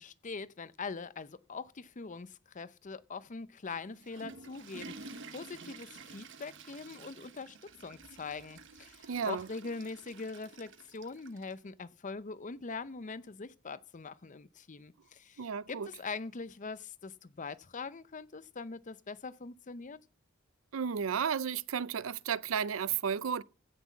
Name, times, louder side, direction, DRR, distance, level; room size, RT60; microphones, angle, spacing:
voice 1, 0.0-20.0, left 4 dB, 40° left, 0.6 m, -43 dB
Water / Toilet flush, 3.8-11.6, right 4 dB, 65° right, 1.1 m, -50 dB
voice 2, 9.1-9.5 15.4-15.9 20.7-23.4, right 7 dB, 85° right, 0.5 m, -33 dB
15.5 x 6.1 x 7.2 m
head